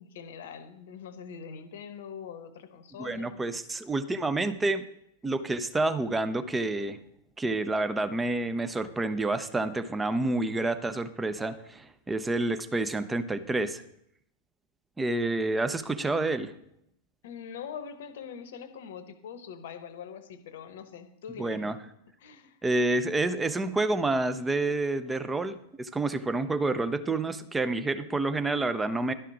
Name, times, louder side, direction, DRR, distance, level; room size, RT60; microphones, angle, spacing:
voice 1, 0.0-3.5 17.2-21.9 22.2-22.6, left 7 dB, 55° left, 12 dB, 0.9 m, -43 dB
voice 2, 3.0-4.8 5.2-7.0 7.4-13.8 15.0-16.5 21.4-21.8 22.6-29.1, right 2 dB, 10° right, 11 dB, 0.6 m, -28 dB
11.5 x 5.6 x 4.8 m, 0.77 s
figure-of-eight pair, 90°, 0 cm